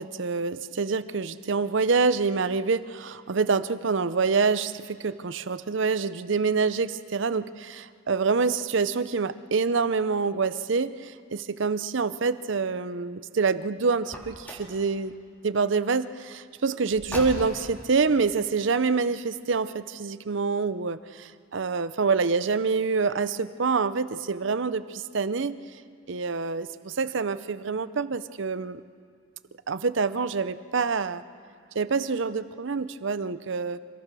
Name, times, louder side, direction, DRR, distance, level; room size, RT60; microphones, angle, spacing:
voice 1, 0.0-15.1 15.4-25.6 26.1-28.8 29.7-31.2 31.7-33.8, right 4 dB, 65° right, 14 dB, 0.6 m, -26 dB
Car, 14.0-14.8 16.9-17.8, equal, 10° left, 3.5 m, -37 dB
26.0 x 21.0 x 6.2 m, 2.2 s
head